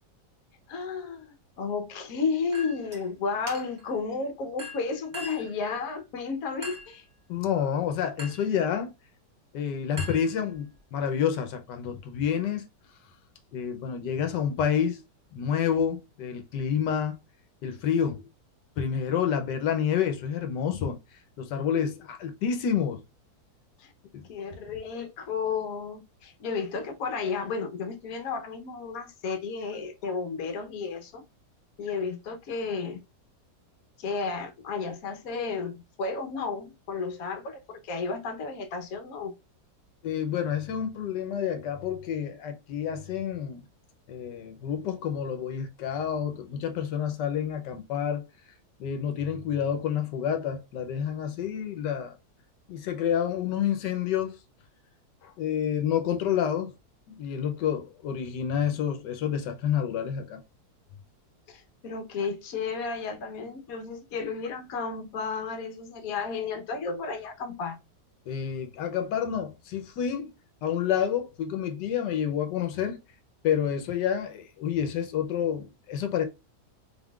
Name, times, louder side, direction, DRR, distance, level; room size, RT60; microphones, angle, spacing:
voice 1, 0.7-7.0 23.8-23.9 24.3-31.2 31.8-33.0 34.0-39.3 61.5-67.8, left 5 dB, 60° left, 1.3 m, -33 dB
Chink clink, 2.5-3.0 3.5-3.9 4.6-5.6 6.6-7.0 8.2-8.5 10.0-10.8, left 1 dB, 25° right, 1.4 m, -41 dB
voice 2, 7.3-8.9 9.5-12.6 13.5-15.0 15.3-17.1 17.6-18.3 18.8-21.0 21.4-23.0 24.1-24.2 40.0-43.6 44.1-48.3 48.8-52.1 52.7-54.4 55.2-56.7 57.1-60.4 68.3-70.3 70.6-73.0 73.4-76.2, left 8 dB, 90° left, 1.4 m, -29 dB
4.3 x 3.6 x 2.3 m
omnidirectional pair, 1.8 m